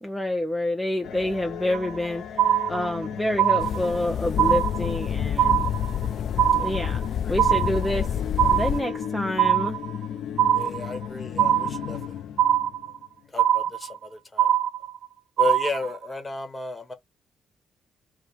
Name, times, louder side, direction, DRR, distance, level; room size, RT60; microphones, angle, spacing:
voice 1, 0.0-2.2 2.7-5.6 6.5-7.0 7.3-8.1 8.5-9.8, left 1 dB, 5° left, 0.7 m, -27 dB
sound 1, 1.0-13.0, left 9 dB, 80° left, 0.7 m, -35 dB
sound 2, 1.7-2.1 2.4-3.1 3.4-4.1 4.4-5.1 5.4-6.1 6.4-7.1 7.4-8.1 8.4-9.1 9.4-10.1 10.4-11.1 11.4-12.1 12.4-13.1 13.4-14.1 14.4-15.1 15.4-16.1, right 11 dB, 65° right, 0.5 m, -22 dB
sound 3, 3.6-8.8, left 9 dB, 60° left, 0.3 m, -29 dB
voice 2, 10.5-12.2 13.3-14.5 15.4-16.9, left 3 dB, 20° left, 1.4 m, -33 dB
3.4 x 2.4 x 4.3 m
cardioid pair, 90°, 0 cm